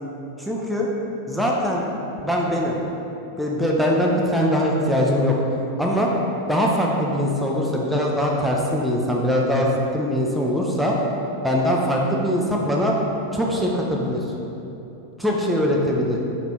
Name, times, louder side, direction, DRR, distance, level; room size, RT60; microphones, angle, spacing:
voice 1, 0.4-0.9 1.3-1.8 2.2-2.8 3.4-5.4 5.8-6.1 6.5-11.0 11.4-13.0 13.3-14.3 15.2-16.2, equal, ahead, -3 dB, 0.3 m, -22 dB
3.2 x 2.3 x 3.4 m, 3.0 s
figure-of-eight pair, 90°, 0 cm